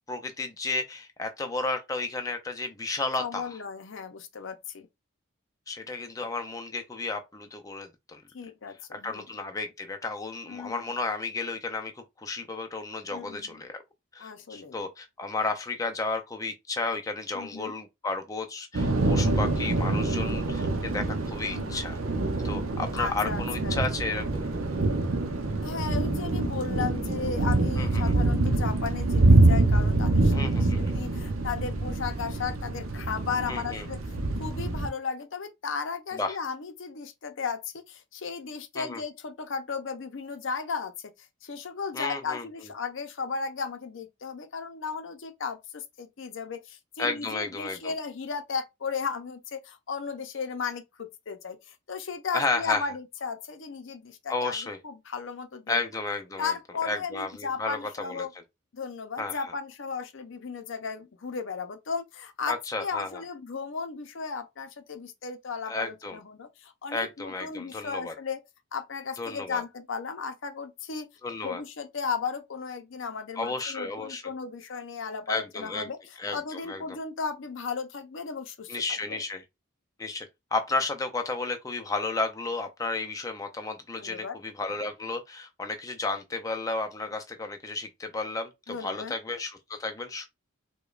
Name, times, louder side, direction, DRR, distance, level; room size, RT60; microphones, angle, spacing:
voice 1, 0.1-3.6 5.7-8.2 8.9-11.9 12.2-13.8 14.1-22.0 22.4-24.5 27.8-28.2 30.3-30.9 33.5-33.8 36.1-36.4 38.8-39.0 41.9-42.4 47.0-47.9 52.3-52.8 54.3-54.8 55.7-56.5 56.8-58.3 59.2-59.4 62.5-63.2 65.7-66.2 66.9-68.1 69.2-69.6 71.2-71.6 73.4-74.2 75.3-75.9 76.2-76.8 78.7-79.4 80.0-90.3, left 3 dB, 15° left, 0.4 m, -33 dB
voice 2, 3.2-4.9 8.3-9.3 10.5-10.9 13.1-13.6 14.2-14.8 17.3-17.7 21.5-21.8 22.9-23.8 25.6-34.0 34.3-41.1 41.4-54.6 54.8-55.8 56.4-58.3 58.7-68.4 68.7-71.1 71.4-78.8 79.1-79.2 84.0-84.4 88.7-89.1, left 5 dB, 60° left, 0.6 m, -35 dB
Thunder / Rain, 18.7-34.9, right 2 dB, 75° right, 0.7 m, -25 dB
4.9 x 2.2 x 2.4 m
head